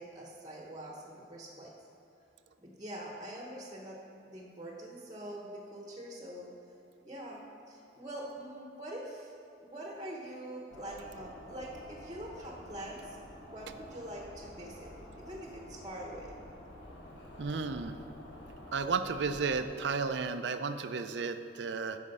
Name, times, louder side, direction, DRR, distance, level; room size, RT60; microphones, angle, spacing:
voice 1, 0.0-1.7 2.6-6.5 7.0-9.3 9.6-13.2 13.4-16.3, right 1 dB, 20° right, -1 dB, 1.0 m, -44 dB
sound 1, 10.7-19.6, left 1 dB, 85° left, 1.5 m, -49 dB
voice 2, 17.4-18.0 18.7-22.0, right 4 dB, 75° right, 9 dB, 0.5 m, -33 dB
13.5 x 5.0 x 5.5 m, 2.6 s
head